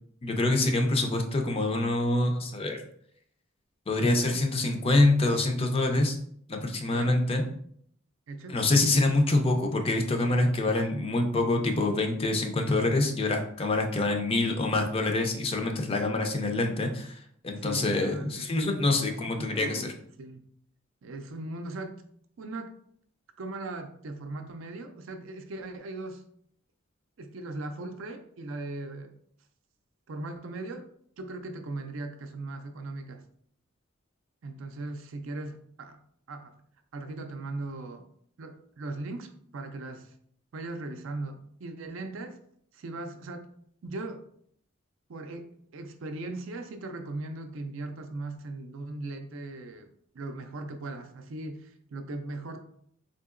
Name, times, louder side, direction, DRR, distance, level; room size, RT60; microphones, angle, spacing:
voice 1, 0.2-2.8 3.9-6.2 6.5-7.4 8.5-19.9, left 2 dB, 30° left, 4 dB, 0.4 m, -26 dB
voice 2, 4.1-4.4 6.9-7.2 8.3-8.6 17.6-18.5 19.0-20.4 21.0-22.0 22.4-22.7 23.4-26.2 27.2-29.1 30.1-30.9 31.2-33.2 34.4-36.0 36.3-36.6 36.9-38.1 38.4-40.1 40.5-42.4 42.7-43.5 43.8-44.2 45.1-49.9 50.1-52.6, right 2 dB, 70° right, 6 dB, 0.4 m, -39 dB
3.8 x 2.7 x 2.4 m, 0.65 s
head